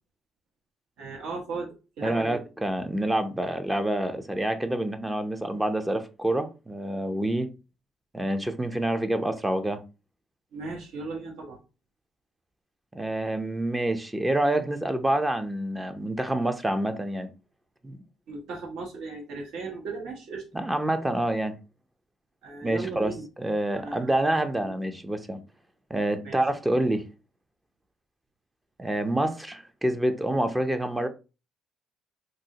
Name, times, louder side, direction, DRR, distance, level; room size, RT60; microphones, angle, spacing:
voice 1, 1.0-2.4 10.5-11.6 18.3-20.5 22.4-23.2 23.8-24.1 24.6-24.7 26.2-26.4, right 3 dB, 75° right, 1.0 m, -36 dB
voice 2, 2.0-7.5 8.1-9.8 12.9-17.3 17.8-18.0 20.5-21.6 22.6-25.4 25.9-27.0 28.8-31.1, right 1 dB, 10° right, 0.5 m, -27 dB
3.8 x 2.0 x 2.7 m
supercardioid pair, 75°, 0 cm